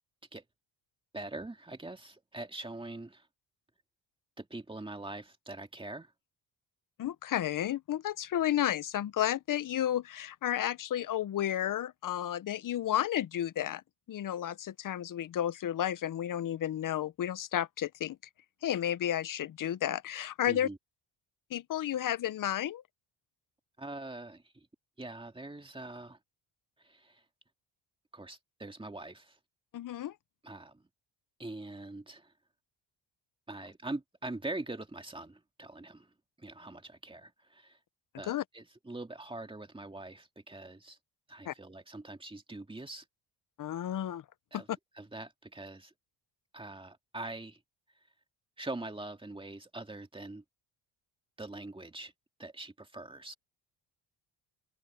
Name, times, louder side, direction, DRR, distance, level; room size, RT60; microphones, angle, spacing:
voice 1, 1.1-3.3 4.4-6.1 20.5-20.8 23.8-24.7 25.0-26.2 26.8-27.2 28.1-29.4 30.4-30.9 31.4-32.3 33.5-36.1 36.4-37.8 38.2-41.0 41.3-43.0 44.5-44.7 44.9-45.9 46.5-47.6 48.6-50.4 51.4-52.1 52.4-53.4, right 2 dB, 10° right, 2.3 m, -43 dB
voice 2, 7.0-13.8 14.1-18.2 18.6-20.7 21.5-22.8 29.7-30.1 38.3-38.4 41.4-41.5 43.6-44.2 44.5-44.8, left 11 dB, 40° left, 0.6 m, -32 dB
cardioid pair, 135°, 48 cm